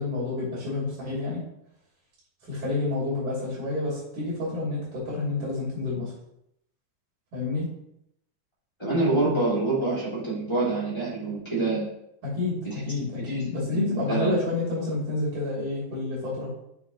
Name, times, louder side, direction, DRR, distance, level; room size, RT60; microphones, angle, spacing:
voice 1, 0.0-1.4 2.5-6.1 7.3-7.7 12.2-16.5, left 2 dB, 50° right, -7 dB, 4.2 m, -29 dB
voice 2, 8.8-11.8 13.3-13.4 13.7-14.3, right 2 dB, 10° left, -9 dB, 1.8 m, -26 dB
7.6 x 6.7 x 3.0 m, 0.77 s
omnidirectional pair, 4.9 m